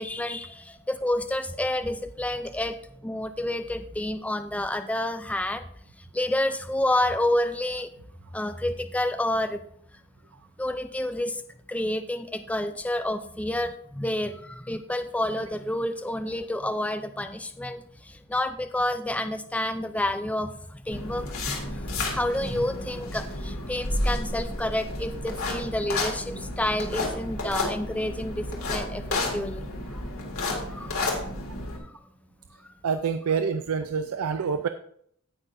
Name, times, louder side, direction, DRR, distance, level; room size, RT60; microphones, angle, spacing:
voice 1, 0.0-2.8 3.0-5.6 6.1-7.9 8.3-9.6 10.6-11.4 11.7-17.8 18.3-20.5 20.9-29.0 29.3-29.6 30.7-30.9, left 1 dB, 5° left, 9 dB, 0.4 m, -29 dB
sound 1, 20.9-31.8, left 2 dB, 75° left, 2.4 m, -31 dB
voice 2, 32.8-34.7, right 6 dB, 90° right, 9 dB, 0.5 m, -27 dB
17.0 x 5.9 x 2.6 m, 0.67 s
head